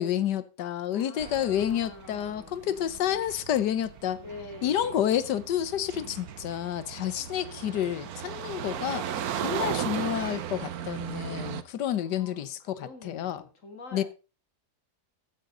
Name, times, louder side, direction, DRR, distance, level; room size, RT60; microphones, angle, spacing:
voice 1, 0.0-4.2 4.6-9.0 9.4-13.4 13.9-14.0, left 10 dB, 90° left, 1.5 m, -29 dB
voice 2, 0.8-2.6 4.2-5.1 8.4-10.0 11.3-11.7 12.0-14.0, left 3 dB, 50° left, 3.0 m, -47 dB
sound 1, 1.2-11.6, right 9 dB, 65° right, 1.3 m, -37 dB
15.5 x 9.2 x 3.8 m
omnidirectional pair, 1.8 m